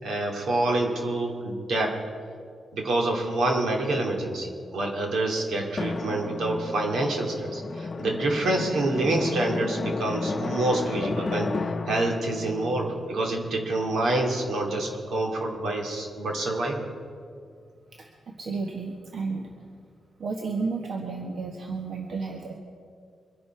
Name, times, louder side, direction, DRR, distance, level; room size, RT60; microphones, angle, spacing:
voice 1, 0.0-2.0 2.7-11.5 11.9-16.9, right 2 dB, 80° right, 1 dB, 2.6 m, -27 dB
Drum, 5.8-14.1, left 3 dB, 35° left, 0.7 m, -33 dB
voice 2, 17.9-19.7 20.2-22.5, right 4 dB, 65° right, 1 dB, 1.4 m, -32 dB
24.5 x 11.0 x 4.5 m, 2.3 s
cardioid pair, 105°, 0 cm